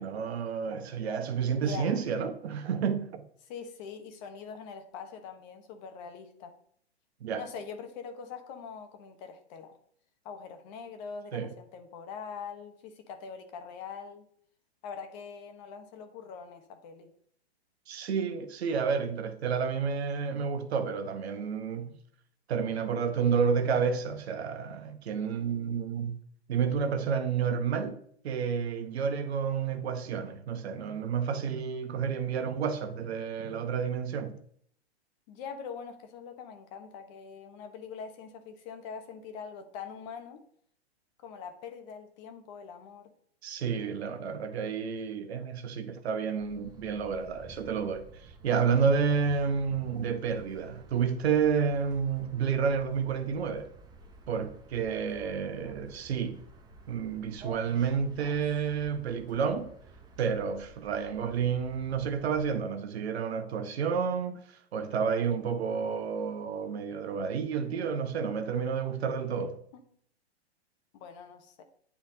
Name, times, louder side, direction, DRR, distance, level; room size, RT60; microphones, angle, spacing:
voice 1, 0.0-3.3 7.2-7.4 11.3-11.5 17.9-22.0 22.5-26.2 26.5-34.4 43.4-53.7 54.3-56.4 56.9-59.7 60.2-69.6, right 6 dB, 70° right, 0.9 m, -30 dB
voice 2, 1.5-2.0 3.4-6.5 7.4-9.7 10.2-14.3 14.8-17.1 35.3-40.4 41.2-43.1 55.6-55.9 69.7-69.8 70.9-71.6, left 6 dB, 40° left, 1.0 m, -43 dB
sound 1, 46.4-62.6, right 3 dB, 10° right, 0.6 m, -51 dB
9.9 x 3.5 x 2.7 m
hypercardioid pair, 120°, 33 cm